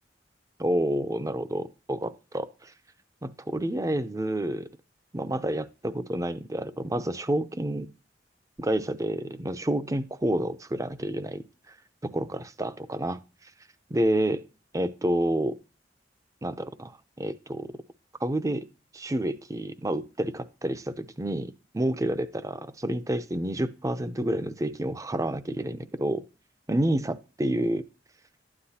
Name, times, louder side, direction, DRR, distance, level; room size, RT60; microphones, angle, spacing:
voice 1, 0.6-2.7 3.2-4.7 5.1-7.9 8.6-11.4 12.0-13.2 13.9-14.4 14.7-15.6 16.4-17.8 18.2-18.7 18.9-26.2 26.7-27.8, right 1 dB, 20° right, 12 dB, 0.6 m, -29 dB
12.5 x 9.8 x 2.8 m, 0.32 s
head